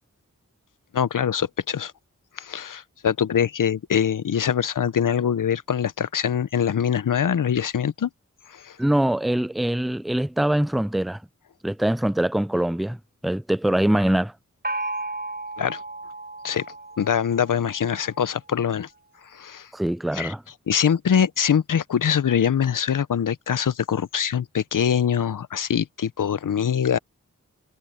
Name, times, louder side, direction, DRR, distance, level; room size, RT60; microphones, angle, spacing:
voice 1, 0.9-1.9 2.4-8.1 8.5-8.8 15.6-15.8 16.4-16.6 17.0-18.9 19.3-19.7 20.1-20.3 20.7-27.0, left 8 dB, 80° left, 0.7 m, -23 dB
voice 2, 8.8-11.2 11.6-13.0 13.2-14.3 19.7-20.4, right 1 dB, ahead, 0.4 m, -23 dB
Gong, 14.6-18.2, right 2 dB, 30° right, 6.1 m, -34 dB
cardioid pair, 45°, 31 cm